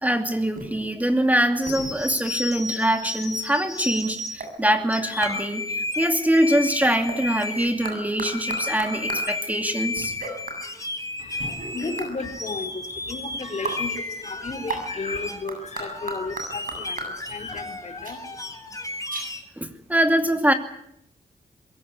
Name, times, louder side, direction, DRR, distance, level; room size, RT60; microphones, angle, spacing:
voice 1, 0.0-10.1 19.1-19.2 19.6-20.5, right 1 dB, 10° right, 6 dB, 2.5 m, -23 dB
sound 1, 0.5-0.8 1.7-2.1 4.4-4.6 5.2-5.5 6.8-7.5 7.8-9.4 10.0-10.6 11.4-12.1 13.6-13.9 14.7-14.9 15.5-17.2 18.0-18.2 18.8-18.9 19.1-19.3, right 3 dB, 65° right, 7.7 m, -34 dB
sound 2, 1.6-4.4 4.9-7.9 8.2-15.4 15.8-19.4, left 2 dB, 20° left, 3.4 m, -33 dB
voice 2, 11.2-18.7, left 3 dB, 50° left, 6 dB, 4.3 m, -34 dB
22.5 x 16.0 x 9.7 m, 0.74 s
cardioid pair, 80°, 15 cm